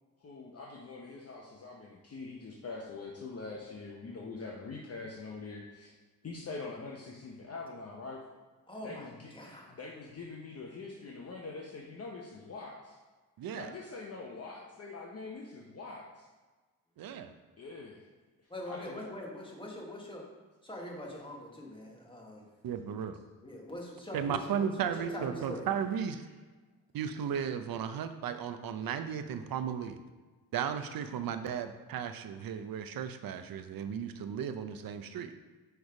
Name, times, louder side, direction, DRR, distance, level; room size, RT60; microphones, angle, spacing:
voice 1, 0.2-5.9 6.2-8.2 8.8-9.3 9.7-13.0 13.5-16.3 17.6-18.0 18.6-19.2, left 3 dB, 40° left, -2 dB, 0.8 m, -44 dB
voice 2, 8.7-9.7 18.5-20.2 20.6-22.4 23.4-25.7, left 1 dB, 15° left, -2 dB, 1.4 m, -43 dB
voice 3, 13.4-13.7 17.0-17.3 22.6-23.2 24.1-26.2 26.9-30.0 30.5-35.3, right 8 dB, 65° right, 9 dB, 0.6 m, -35 dB
6.2 x 3.5 x 4.8 m, 1.3 s
cardioid pair, 90°, 38 cm